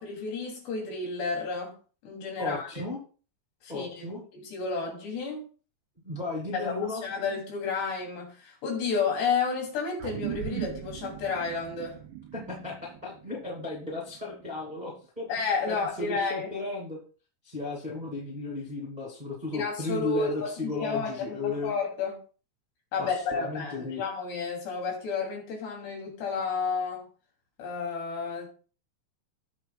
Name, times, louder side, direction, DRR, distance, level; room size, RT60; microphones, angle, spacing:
voice 1, 0.0-1.7 2.0-2.7 3.6-5.5 6.5-12.0 15.3-16.5 19.5-22.2 22.9-27.1 27.6-28.5, left 5 dB, 70° left, 0 dB, 5.1 m, -31 dB
voice 2, 2.4-3.0 3.7-4.2 6.0-7.0 12.3-15.3 15.7-17.0 17.4-21.7 23.0-24.0, left 3 dB, 15° right, -2 dB, 1.5 m, -35 dB
sound 1, 10.0-14.8, right 11 dB, 85° right, 2.7 m, -39 dB
18.0 x 7.2 x 2.3 m, 0.36 s
omnidirectional pair, 5.0 m